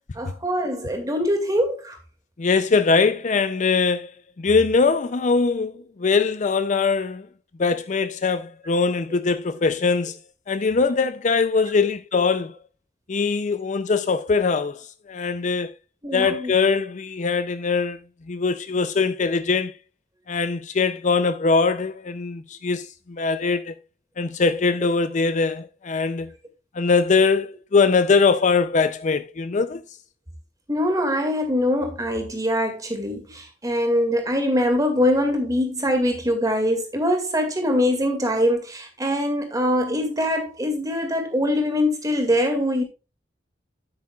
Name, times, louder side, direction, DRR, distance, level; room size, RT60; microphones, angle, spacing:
voice 1, 0.1-2.0 16.0-16.5 30.7-42.8, left 1 dB, 20° right, 2.1 m, -23 dB
voice 2, 2.4-4.1 4.4-7.3 7.6-10.2 10.5-12.6 13.1-15.7 16.1-18.0 18.3-19.7 20.3-23.7 24.2-26.3 26.7-29.8, left 4 dB, 45° left, 0.5 m, -22 dB
9.5 x 8.7 x 2.3 m
head